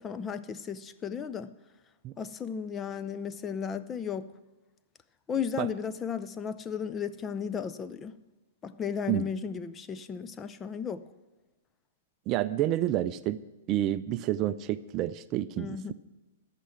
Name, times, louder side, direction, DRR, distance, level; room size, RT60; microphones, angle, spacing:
voice 1, 0.0-1.5 2.2-4.3 5.3-8.1 8.6-11.0 15.6-15.9, left 7 dB, 20° left, 12 dB, 0.5 m, -34 dB
voice 2, 12.3-13.4 13.7-15.9, right 13 dB, 35° right, 14 dB, 0.4 m, -29 dB
14.5 x 6.0 x 7.7 m, 1.1 s
hypercardioid pair, 115°, 0 cm